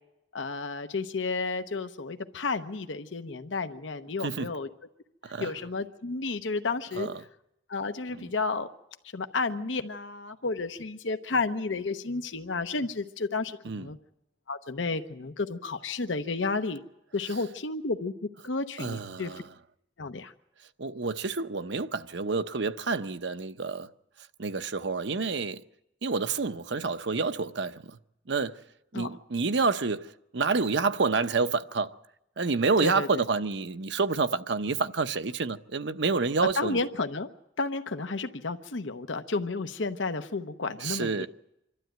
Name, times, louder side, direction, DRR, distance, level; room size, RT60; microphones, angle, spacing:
voice 1, 0.3-4.7 5.4-7.1 7.7-8.7 9.1-14.0 14.5-16.8 17.1-19.3 20.0-20.3 28.9-29.1 32.8-33.2 36.5-37.3 37.6-41.3, left 3 dB, 85° left, 0.9 m, -32 dB
voice 2, 18.8-19.5 20.8-23.9 24.4-25.6 26.0-28.0 28.3-28.6 28.9-31.9 32.4-36.8 40.8-41.3, right 4 dB, 65° right, 0.8 m, -28 dB
26.0 x 12.5 x 9.2 m
head